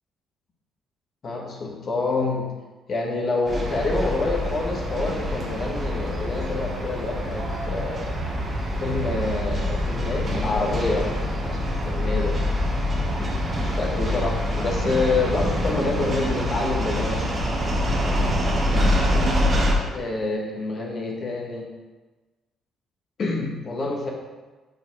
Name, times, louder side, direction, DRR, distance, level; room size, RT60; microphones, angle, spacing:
voice 1, 1.2-2.5 2.9-8.1 8.8-11.6 11.8-12.4 13.6-17.3 19.9-21.7 23.2-24.1, left 3 dB, 50° left, -1 dB, 1.3 m, -27 dB
sound 1, 3.4-19.7, equal, 40° right, 1.3 m, -25 dB
5.2 x 4.3 x 4.7 m, 1.2 s
supercardioid pair, 75°, 0 cm